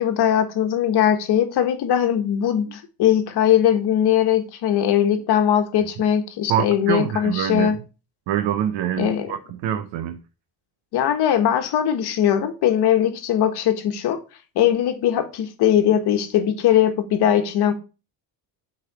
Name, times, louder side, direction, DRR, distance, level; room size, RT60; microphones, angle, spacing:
voice 1, 0.0-7.7 9.0-9.3 10.9-14.2 14.5-17.7, left 10 dB, 65° left, 1.2 m, -20 dB
voice 2, 6.5-7.8 8.3-10.2, right 10 dB, 90° right, 0.8 m, -25 dB
6.4 x 4.2 x 4.7 m
cardioid pair, 175°, 43 cm